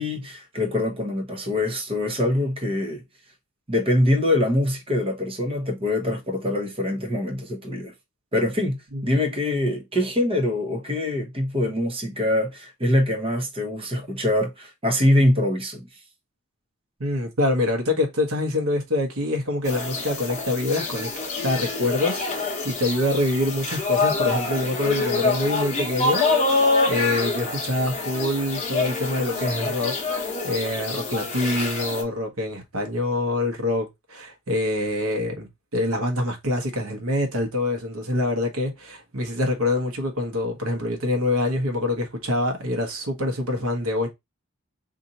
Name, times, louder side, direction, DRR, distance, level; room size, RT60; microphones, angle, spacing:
voice 1, 0.0-3.0 3.7-7.9 8.3-15.9, left 1 dB, 25° right, 0.9 m, -24 dB
voice 2, 17.0-21.1 21.4-44.1, left 1 dB, 75° right, 1.1 m, -25 dB
sound 1, 19.6-32.0, left 3 dB, 30° left, 0.9 m, -26 dB
2.8 x 2.5 x 4.0 m
head